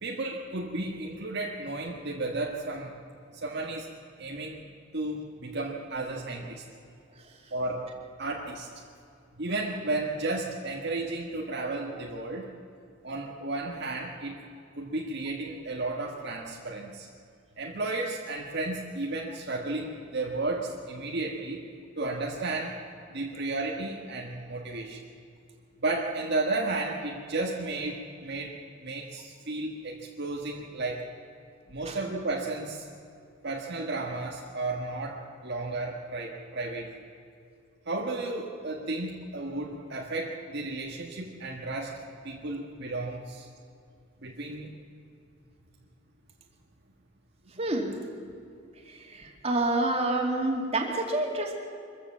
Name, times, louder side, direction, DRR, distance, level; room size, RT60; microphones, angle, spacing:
voice 1, 0.0-2.9 3.3-3.9 4.2-4.6 4.9-6.6 7.5-7.9 8.2-8.7 9.4-12.5 13.0-14.4 14.8-17.1 17.6-21.7 22.0-22.8 23.1-25.0 25.8-31.0 31.7-32.8 33.4-36.9 37.9-43.5 44.2-44.7, right 2 dB, 60° right, 0 dB, 1.6 m, -33 dB
voice 2, 47.6-47.9 49.1-51.5, right 2 dB, 30° right, 1 dB, 2.7 m, -28 dB
24.0 x 15.0 x 7.3 m, 2.5 s
head